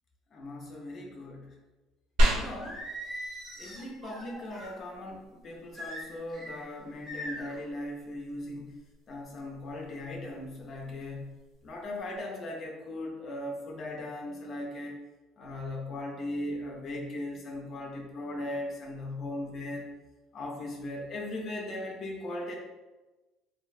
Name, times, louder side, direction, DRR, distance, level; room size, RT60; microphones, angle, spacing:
voice 1, 0.3-1.5 2.3-2.8 3.6-8.8 9.1-11.3 11.6-15.0 15.4-19.9 20.3-22.6, left 1 dB, 40° left, -1 dB, 0.5 m, -38 dB
sound 1, 2.2-12.2, right 1 dB, 85° right, 0.6 m, -35 dB
Singing, 2.6-4.8 5.7-6.6 7.1-7.6, equal, 25° right, 0.8 m, -41 dB
3.1 x 2.6 x 2.3 m, 1.1 s
cardioid pair, 135°, 0 cm